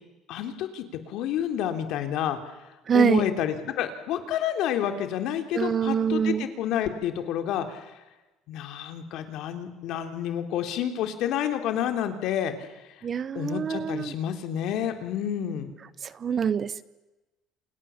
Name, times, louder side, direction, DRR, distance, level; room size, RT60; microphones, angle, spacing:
voice 1, 0.3-2.4 2.9-7.9 8.5-12.7 13.4-15.7, left 10 dB, 65° left, 7 dB, 3.4 m, -29 dB
voice 2, 2.9-3.2 5.5-6.5 13.0-14.1 16.0-16.8, right 7 dB, 35° right, 17 dB, 1.0 m, -25 dB
28.0 x 28.0 x 7.3 m, 1.1 s
cardioid pair, 125°, 0 cm